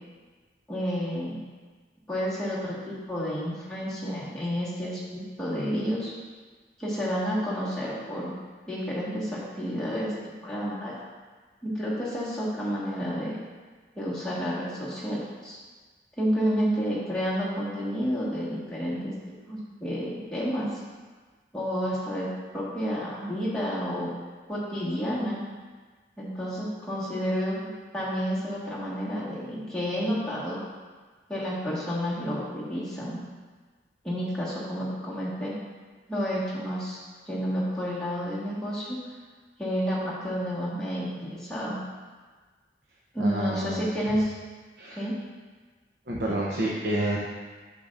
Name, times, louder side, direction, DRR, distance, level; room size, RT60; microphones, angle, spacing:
voice 1, 0.7-1.4 2.1-6.1 6.8-8.4 8.7-10.9 11.6-13.3 13.9-15.6 16.2-19.1 19.5-20.8 21.5-22.3 22.5-24.1 24.5-25.4 26.2-27.5 27.9-30.6 31.3-33.2 34.0-35.5 36.1-37.0 37.3-39.0 39.6-41.8 43.1-44.3 44.9-45.1, equal, 5° left, -9 dB, 1.6 m, -30 dB
voice 2, 43.2-43.8 44.8-45.0 46.1-47.2, right 1 dB, 70° right, -5 dB, 0.8 m, -29 dB
8.5 x 6.5 x 2.5 m, 1.4 s
head